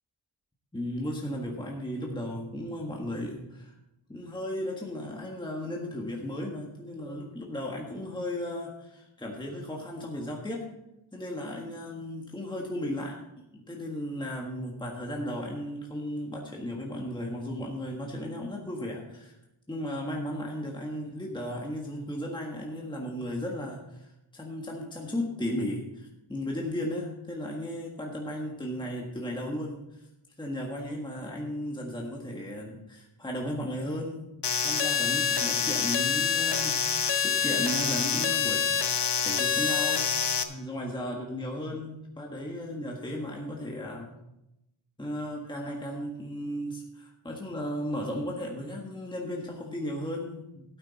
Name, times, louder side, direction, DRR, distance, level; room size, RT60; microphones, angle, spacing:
voice 1, 0.7-3.8 4.1-10.7 11.1-13.2 13.5-19.4 19.7-30.1 30.4-36.8 37.1-40.1 40.5-44.2 45.0-50.8, left 1 dB, 10° left, -1 dB, 1.5 m, -35 dB
sound 1, 34.4-40.4, left 7 dB, 55° left, 0.9 m, -26 dB
13.0 x 9.0 x 4.1 m, 0.90 s
wide cardioid pair, 115°, 49 cm